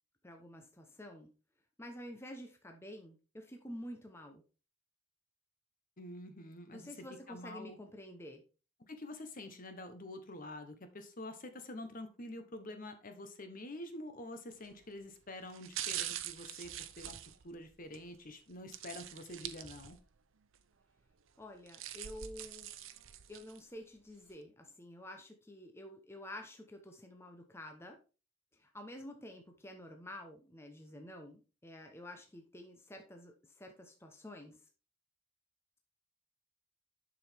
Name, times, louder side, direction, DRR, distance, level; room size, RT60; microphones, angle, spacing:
voice 1, 0.2-1.3 1.8-4.4 6.7-8.4 21.4-22.7 23.3-28.0 28.5-34.6, left 1 dB, 10° left, 4 dB, 0.9 m, -49 dB
voice 2, 6.0-6.9 7.3-7.8 8.9-17.2 17.4-20.0, left 1 dB, 40° left, 8 dB, 1.0 m, -47 dB
sound 1, 14.5-14.8 15.5-18.0 18.7-20.2 20.5-20.6 21.4-23.6 24.1-24.2, right 12 dB, 75° right, 0.7 m, -44 dB
7.4 x 6.2 x 3.5 m, 0.33 s
head